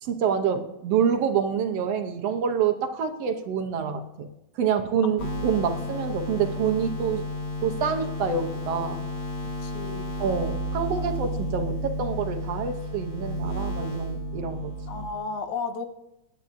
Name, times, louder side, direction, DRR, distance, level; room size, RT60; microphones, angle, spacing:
voice 1, 0.0-4.3 4.5-7.2 7.6-9.1 10.2-14.7, right 7 dB, 65° right, 7 dB, 1.8 m, -27 dB
sound 1, 5.2-15.1, left 1 dB, 30° left, 5.5 m, -32 dB
voice 2, 9.4-10.1 14.9-15.9, left 4 dB, 90° left, 7 dB, 2.5 m, -33 dB
20.0 x 10.0 x 2.6 m, 0.91 s
omnidirectional pair, 3.3 m